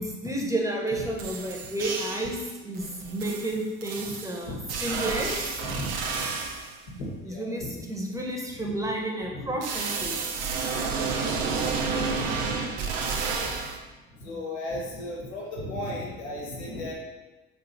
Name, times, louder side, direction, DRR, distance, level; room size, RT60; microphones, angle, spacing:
voice 1, 0.0-2.4 2.6-5.5 7.3-10.4 14.3-14.4, right 1 dB, 10° right, -1 dB, 0.7 m, -31 dB
sound 1, 0.9-1.0 1.2-2.4 2.7-6.8 9.6-13.8, right 4 dB, 65° right, 0.5 m, -30 dB
voice 2, 5.6-6.3 6.9-7.9 8.1-8.6 9.3-9.5 11.5-13.2 14.1-16.9, left 1 dB, 80° left, -2 dB, 0.8 m, -37 dB
3.8 x 2.7 x 2.5 m, 1.2 s
hypercardioid pair, 55°, 34 cm